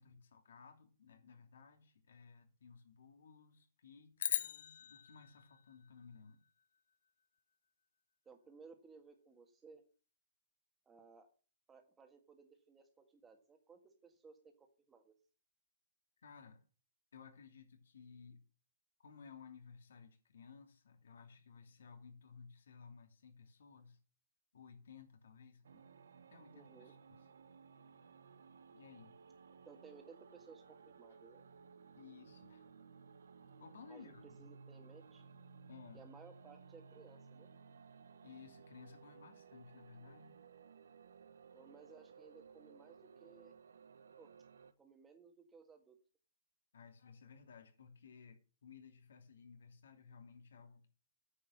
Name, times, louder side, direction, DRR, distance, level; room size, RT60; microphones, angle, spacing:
voice 1, 0.0-6.4 16.2-16.6 17.1-18.4 19.0-24.0 24.5-25.8 26.3-27.0 28.7-29.1 32.0-32.7 33.6-34.2 35.7-36.0 38.2-40.4 46.7-50.9, left 6 dB, 75° left, 4 dB, 2.8 m, -58 dB
sound 1, 4.2-6.6, left 9 dB, 60° left, 0.7 m, -41 dB
voice 2, 8.2-9.8 10.8-11.3 11.7-15.1 26.5-26.9 29.5-31.4 33.9-34.1 34.4-35.2 35.9-37.5 41.5-43.6 44.2-44.3 44.8-46.0, right 5 dB, 10° right, 5 dB, 1.7 m, -60 dB
sound 2, 25.6-44.7, right 5 dB, 85° right, 1.2 m, -59 dB
9.7 x 6.4 x 8.7 m, 0.39 s
hypercardioid pair, 170°, 0 cm